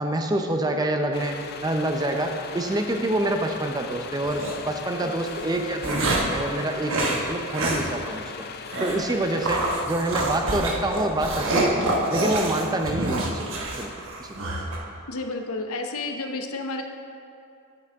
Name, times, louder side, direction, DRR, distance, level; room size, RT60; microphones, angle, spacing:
voice 1, 0.0-8.2 8.8-13.5 13.8-13.9 14.2-14.4, right 1 dB, 20° right, 4 dB, 0.5 m, -27 dB
sound 1, 1.1-9.9, left 6 dB, 45° left, 0.4 m, -39 dB
sound 2, 4.2-4.5 5.3-6.4 6.9-7.2 7.5-7.8 8.1-8.2 8.7-9.0 9.4-14.8, right 2 dB, 60° right, 1.2 m, -27 dB
voice 2, 15.1-16.8, left 2 dB, 70° left, 5 dB, 0.7 m, -31 dB
9.1 x 8.4 x 3.5 m, 2.5 s
head